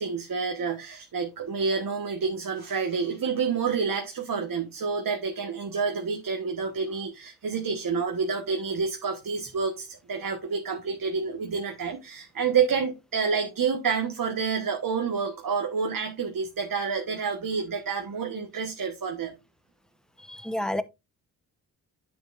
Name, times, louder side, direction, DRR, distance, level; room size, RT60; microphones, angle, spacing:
voice 1, 0.0-19.3, right 5 dB, 50° right, 1.3 m, -28 dB
voice 2, 20.2-20.8, left 1 dB, ahead, 0.9 m, -30 dB
9.9 x 6.9 x 2.5 m
supercardioid pair, 45°, 42 cm